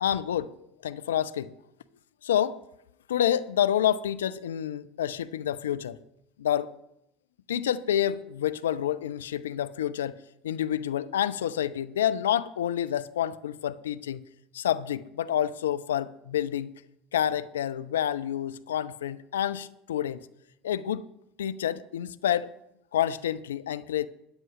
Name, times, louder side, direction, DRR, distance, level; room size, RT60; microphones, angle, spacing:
voice 1, 0.0-0.5 0.8-1.5 2.2-2.6 3.1-6.0 6.4-6.7 7.5-10.2 10.4-14.2 14.5-16.7 17.1-20.2 20.6-21.0 21.4-22.5 22.9-24.1, left 10 dB, 75° left, 0.4 m, -28 dB
13.0 x 9.1 x 3.1 m
figure-of-eight pair, 70°, 0 cm